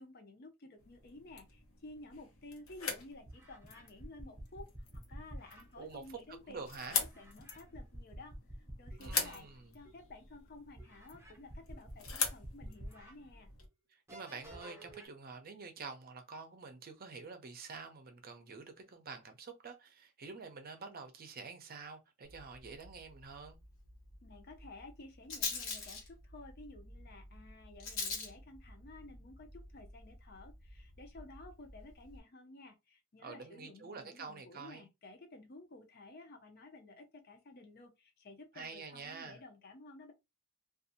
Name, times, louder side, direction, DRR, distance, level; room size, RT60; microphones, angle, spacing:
voice 1, 0.0-8.4 8.8-9.5 9.7-13.5 24.2-40.1, left 2 dB, 50° left, 0.6 m, -53 dB
sound 1, 0.8-13.7, left 6 dB, 85° left, 0.8 m, -43 dB
sound 2, 2.6-2.7 3.3-5.7 7.0-9.4 9.9-10.0 10.8-13.1 13.6-13.7 14.1-15.1, equal, 10° right, 0.7 m, -49 dB
voice 2, 6.5-7.0 9.0-9.7 13.9-23.6 33.2-34.8 38.5-39.4, right 4 dB, 45° right, 0.5 m, -48 dB
Rattle, 22.3-32.2, left 4 dB, 65° left, 1.1 m, -45 dB
2.5 x 2.3 x 2.7 m
head